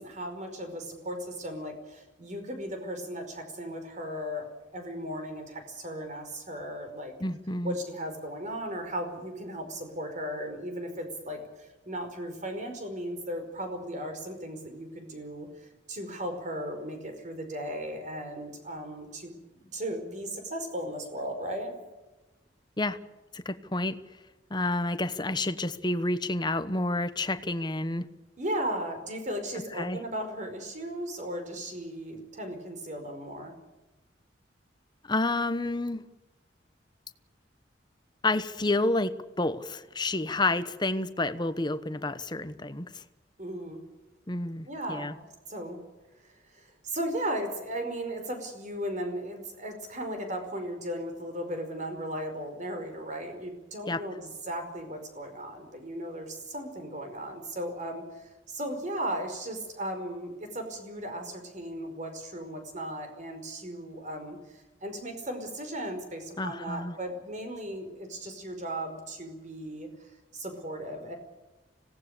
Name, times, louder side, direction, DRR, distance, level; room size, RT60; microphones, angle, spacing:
voice 1, 0.0-7.1 7.6-15.5 15.9-19.4 19.7-21.7 28.4-33.5 43.4-43.8 44.7-45.1 45.5-45.8 46.2-71.2, right 1 dB, 40° right, 6 dB, 5.0 m, -36 dB
voice 2, 7.2-7.8 22.8-23.0 23.3-24.0 24.5-28.1 29.7-30.0 35.0-36.1 38.2-43.0 44.3-45.1 53.9-54.0 66.4-67.0, left 2 dB, 25° left, 12 dB, 1.1 m, -29 dB
26.0 x 18.0 x 6.8 m, 1.1 s
head